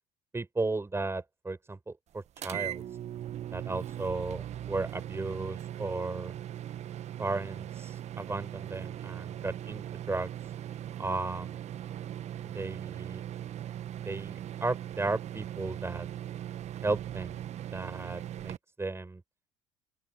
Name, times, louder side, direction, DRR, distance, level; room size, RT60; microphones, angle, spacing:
voice 1, 0.3-2.8 3.5-6.3 7.2-10.3 11.0-11.6 12.5-13.2 14.0-16.1 16.8-17.4 17.7-19.2, right 3 dB, 15° right, 6.1 m, -35 dB
sound 1, 2.4-18.6, right 11 dB, 45° right, 1.5 m, -39 dB
open air
figure-of-eight pair, 60°, 17 cm